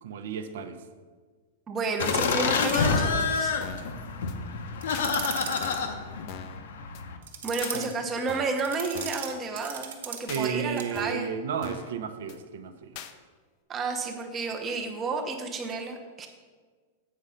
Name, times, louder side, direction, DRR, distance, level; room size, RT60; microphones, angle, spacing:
voice 1, 0.0-0.8 7.7-7.9 10.3-13.0, right 7 dB, 65° right, 9 dB, 0.7 m, -33 dB
voice 2, 1.7-3.6 7.4-11.3 13.7-16.3, right 3 dB, 15° right, 4 dB, 0.7 m, -31 dB
sound 1, 2.0-7.2, left 5 dB, 75° left, 0.8 m, -28 dB
sound 2, 2.9-3.3 3.6-3.9 4.3-4.4 4.9-5.1 5.6-5.9 6.3-6.6 6.9-7.0 7.6-7.8 8.3-8.6 8.9-9.3 9.6-9.7 10.3-10.5 11.0-11.3 11.6-11.9 12.3-12.4 13.0-13.1, left 9 dB, 35° left, 0.4 m, -42 dB
sound 3, 4.8-5.8 7.2-7.9 8.6-10.5 10.8-11.0, right 7 dB, 80° right, 1.2 m, -37 dB
8.5 x 5.1 x 5.6 m, 1.5 s
supercardioid pair, 180°, 0 cm